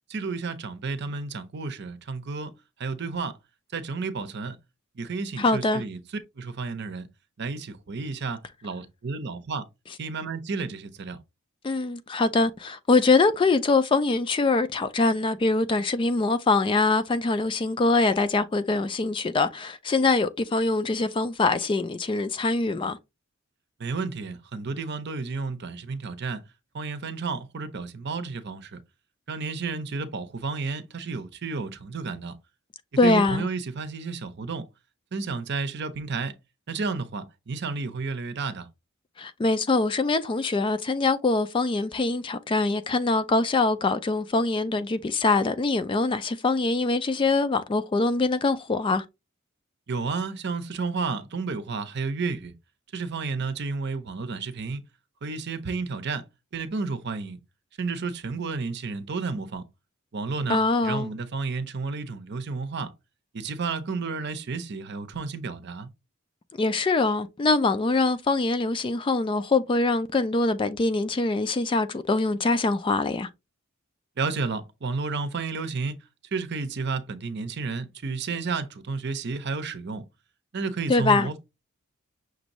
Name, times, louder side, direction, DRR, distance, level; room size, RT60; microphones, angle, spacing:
voice 1, 0.1-2.5 2.8-3.4 3.7-4.6 5.0-6.0 6.4-7.1 7.4-9.7 10.0-11.2 23.8-26.4 26.7-28.8 29.3-32.3 33.0-34.7 35.1-36.3 36.7-38.7 49.9-52.5 52.9-54.9 55.2-56.3 56.5-57.4 57.8-59.6 60.1-62.9 63.3-65.9 74.2-76.0 76.3-80.0 80.5-81.4, right 4 dB, 55° right, 0.7 m, -31 dB
voice 2, 5.4-5.8 11.6-23.0 33.0-33.5 39.2-49.0 60.5-61.1 66.6-73.3 80.9-81.3, left 3 dB, 25° left, 0.3 m, -23 dB
6.1 x 2.6 x 3.0 m
head